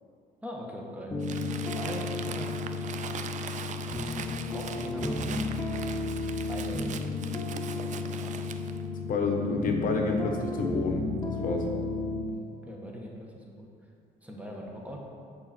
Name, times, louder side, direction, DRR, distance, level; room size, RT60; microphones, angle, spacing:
voice 1, 0.4-1.1 1.7-2.6 4.5-5.2 6.5-6.9 7.8-8.4 12.6-13.7 14.2-15.0, equal, 10° right, -1 dB, 1.3 m, -41 dB
sound 1, 1.1-12.3, left 3 dB, 20° left, 0.8 m, -33 dB
Crumpling crinkling, 1.2-8.8, right 7 dB, 45° right, 0.5 m, -41 dB
voice 2, 9.1-11.7, left 3 dB, 55° left, 3 dB, 0.9 m, -29 dB
8.8 x 5.9 x 4.3 m, 2.3 s
cardioid pair, 110°, 17 cm